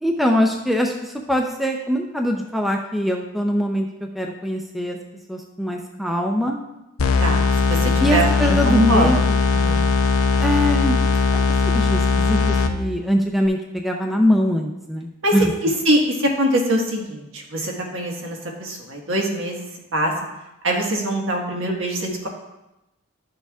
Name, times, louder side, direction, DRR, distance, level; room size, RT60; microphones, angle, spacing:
voice 1, 0.0-3.9 4.1-5.0 5.3-6.6 7.8-9.3 10.4-11.0 11.3-15.5, equal, ahead, 2 dB, 0.4 m, -22 dB
sound 1, 7.0-13.0, left 4 dB, 85° left, 0.6 m, -19 dB
voice 2, 7.2-9.1 9.5-9.8 15.2-15.3 15.8-19.6 19.9-20.1 20.6-22.3, right 1 dB, 70° right, 0 dB, 1.5 m, -23 dB
11.5 x 6.7 x 2.4 m, 0.94 s
head